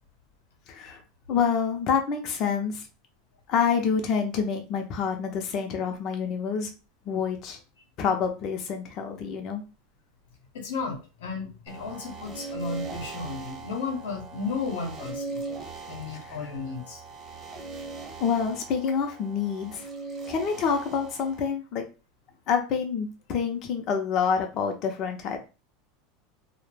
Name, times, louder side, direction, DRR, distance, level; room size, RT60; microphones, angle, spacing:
voice 1, 0.7-1.0 1.3-2.9 3.5-6.7 7.1-7.6 8.0-9.6 16.1-16.4 18.2-19.9 20.3-21.9 22.5-25.4, left 6 dB, 45° left, 4 dB, 0.5 m, -27 dB
voice 2, 10.5-15.4 15.9-17.0, left 4 dB, 80° left, 2 dB, 0.7 m, -34 dB
sound 1, 11.7-21.5, right 3 dB, 30° right, 0.8 m, -40 dB
2.1 x 2.0 x 3.1 m, 0.31 s
supercardioid pair, 130°, 0 cm